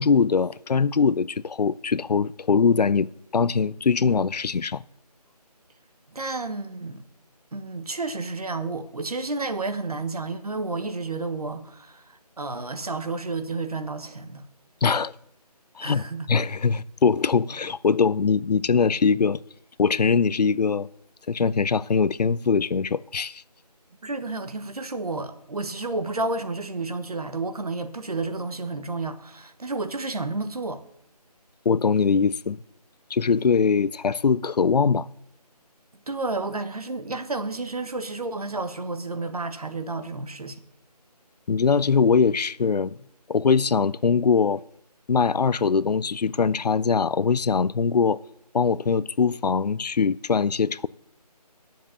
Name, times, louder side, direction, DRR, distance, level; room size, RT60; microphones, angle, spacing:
voice 1, 0.0-4.8 14.8-15.1 15.8-19.4 19.8-20.9 21.3-23.4 31.7-32.6 33.1-35.1 41.5-43.0 43.3-44.6 45.1-48.2 48.5-50.9, left 5 dB, 75° left, 0.5 m, -22 dB
voice 2, 6.1-7.0 7.5-14.4 15.8-16.3 24.0-30.8 35.9-40.6, right 3 dB, 65° right, 1.2 m, -31 dB
10.0 x 7.4 x 7.0 m
figure-of-eight pair, 175°, 21 cm